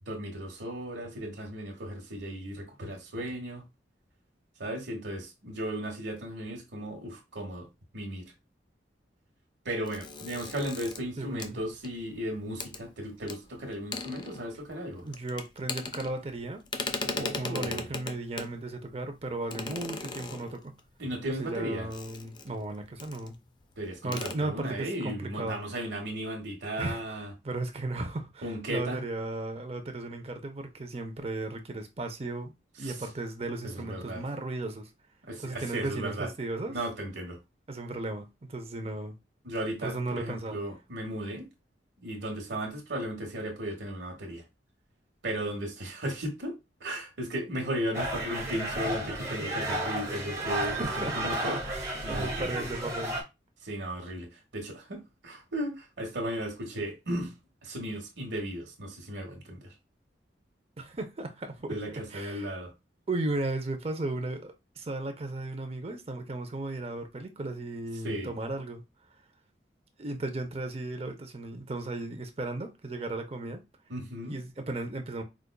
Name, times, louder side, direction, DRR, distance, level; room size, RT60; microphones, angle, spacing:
voice 1, 0.1-3.6 4.6-7.7 7.9-8.3 9.6-15.0 17.0-17.8 21.0-21.9 23.8-27.3 28.4-29.0 32.8-32.9 33.6-34.2 35.3-36.3 36.7-37.4 39.4-41.5 42.0-44.4 45.2-46.5 46.8-51.6 52.0-52.5 53.6-54.3 54.5-57.3 57.6-59.7 61.7-62.7 68.0-68.3 73.9-74.4, right 1 dB, 85° right, 1.2 m, -35 dB
sound 1, 9.9-12.2 12.6-12.8 13.3-13.4 13.7-14.7 15.0-16.4 16.7-18.6 19.5-20.8 21.9-22.6 23.0-23.3 23.6-23.7 24.0-24.3, left 4 dB, 25° left, 0.3 m, -37 dB
voice 2, 11.2-11.6 15.0-16.6 17.2-20.7 21.4-23.4 24.0-25.6 26.8-32.5 32.8-34.9 35.4-36.8 37.7-39.1 39.8-40.6 50.6-53.2 60.8-62.5 63.1-68.8 70.0-73.6 74.2-75.2, right 2 dB, 35° right, 0.5 m, -35 dB
sound 2, 47.9-53.2, right 1 dB, 15° right, 0.9 m, -33 dB
5.0 x 2.3 x 2.3 m
head